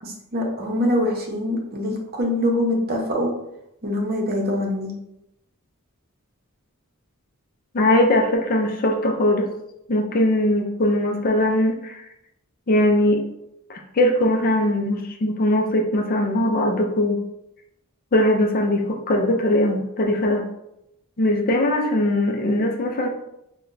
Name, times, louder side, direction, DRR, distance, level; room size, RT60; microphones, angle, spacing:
voice 1, 0.0-3.3 3.8-4.9, left 1 dB, 45° right, 0 dB, 0.8 m, -24 dB
voice 2, 7.7-9.5 9.9-12.0 12.7-13.2 13.7-17.2 18.1-20.5 21.2-23.1, left 1 dB, 40° left, 3 dB, 0.5 m, -20 dB
5.6 x 2.2 x 2.6 m, 0.84 s
head